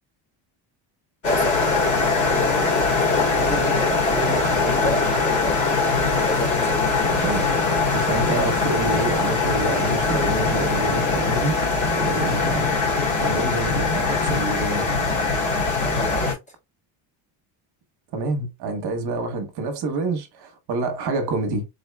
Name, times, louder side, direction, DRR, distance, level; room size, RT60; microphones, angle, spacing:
sound 1, 1.2-16.3, left 3 dB, 35° left, 1.7 m, -22 dB
voice 1, 1.2-1.6 2.2-5.6 6.2-6.8 15.8-16.4, right 1 dB, 15° left, 1.2 m, -31 dB
voice 2, 7.1-7.4 7.9-11.5 11.9-12.7 13.2-14.9 18.1-21.7, right 3 dB, 50° right, 1.1 m, -27 dB
4.3 x 4.0 x 2.2 m
cardioid pair, 155°, 49 cm